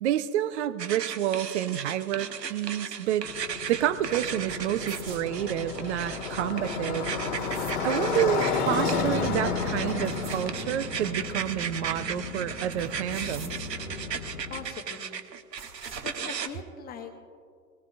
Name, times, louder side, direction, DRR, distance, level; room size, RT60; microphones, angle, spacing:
voice 1, 0.0-3.3 3.7-7.1 7.8-13.7, right 12 dB, 45° right, 14 dB, 0.7 m, -29 dB
sound 1, 0.8-16.5, right 7 dB, 90° right, 0.9 m, -36 dB
Motorcycle, 3.2-14.7, left 5 dB, 70° left, 1.6 m, -32 dB
sound 2, 4.5-5.4 7.2-7.8 9.6-10.5 12.8-13.9 15.5-16.0, right 4 dB, 25° right, 2.2 m, -45 dB
voice 2, 14.5-15.2 16.0-17.2, left 5 dB, 20° left, 4 dB, 1.2 m, -41 dB
20.5 x 18.0 x 2.5 m, 2.2 s
hypercardioid pair, 115°, 48 cm